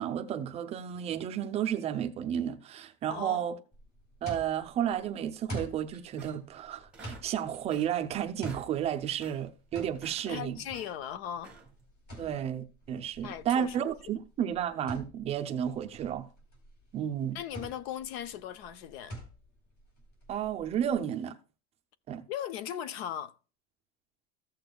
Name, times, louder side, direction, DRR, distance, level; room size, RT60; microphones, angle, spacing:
voice 1, 0.0-3.6 4.2-10.6 12.2-16.3 16.9-17.4 20.3-21.4 22.1-22.2, right 9 dB, 20° right, 0.5 m, -32 dB
voice 2, 3.1-3.4 10.3-11.6 12.2-12.4 13.2-13.8 17.3-19.2 22.3-23.3, left 10 dB, 70° left, 0.8 m, -38 dB
sound 1, 3.7-21.0, right 1 dB, 30° left, 3.6 m, -47 dB
sound 2, 5.9-6.6 6.9-8.0 8.3-8.7 9.0-9.4 9.8-10.9 11.3-11.8, right 4 dB, 5° right, 1.1 m, -51 dB
14.5 x 6.7 x 2.3 m
cardioid pair, 175°, 33 cm